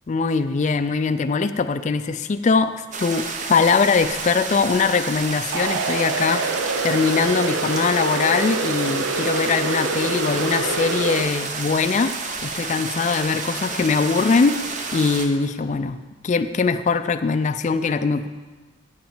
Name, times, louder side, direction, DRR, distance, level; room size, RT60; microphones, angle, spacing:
voice 1, 0.1-12.1 12.4-18.3, left 4 dB, 35° left, 10 dB, 0.3 m, -22 dB
sound 1, 2.9-15.3, right 4 dB, 40° right, 0.7 m, -30 dB
sound 2, 5.5-11.2, right 3 dB, 90° right, 0.7 m, -26 dB
8.5 x 5.9 x 7.2 m, 1.3 s
head